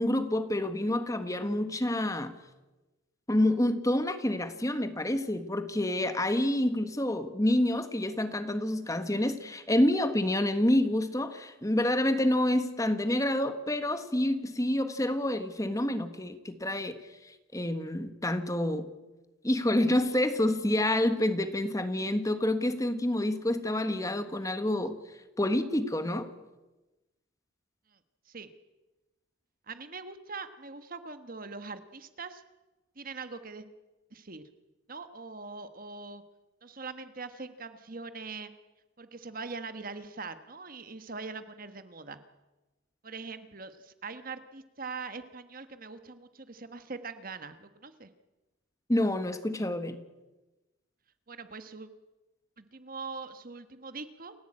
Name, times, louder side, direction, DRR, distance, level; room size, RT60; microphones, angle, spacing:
voice 1, 0.0-2.3 3.3-17.0 17.2-18.8 19.4-25.0 25.4-26.3 48.9-50.0, left 1 dB, 15° left, 9 dB, 1.5 m, -28 dB
voice 2, 29.7-32.4 32.9-33.7 34.1-34.4 34.9-36.2 36.6-38.5 39.0-42.2 43.0-48.1 51.3-51.9 52.6-54.3, right 4 dB, 45° right, 10 dB, 1.4 m, -42 dB
28.5 x 15.5 x 8.8 m, 1.1 s
head